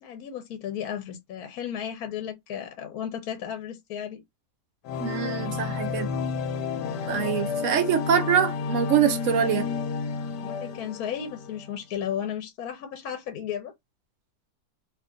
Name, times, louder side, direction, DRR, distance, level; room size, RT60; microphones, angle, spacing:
voice 1, 0.0-4.2 10.4-13.7, left 9 dB, 65° left, 1.1 m, -34 dB
sound 1, 4.8-11.7, left 5 dB, 90° left, 1.2 m, -31 dB
voice 2, 5.0-6.1 7.1-9.7, right 8 dB, 65° right, 0.8 m, -24 dB
2.8 x 2.4 x 3.7 m
omnidirectional pair, 1.8 m